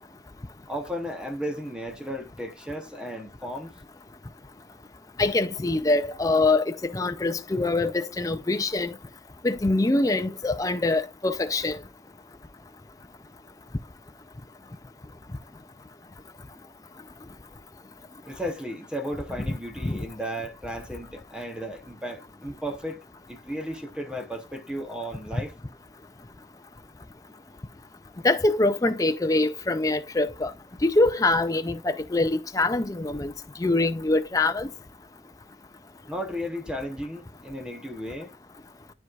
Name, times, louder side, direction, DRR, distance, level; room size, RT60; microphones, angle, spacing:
voice 1, 0.7-3.7 18.3-23.0 23.3-25.6 36.1-38.3, equal, 5° right, 0.8 m, -34 dB
voice 2, 5.2-8.9 9.4-11.8 19.8-20.0 28.2-30.5 30.8-33.3 33.6-34.7, left 2 dB, 20° left, 0.4 m, -24 dB
12.5 x 4.6 x 2.4 m
head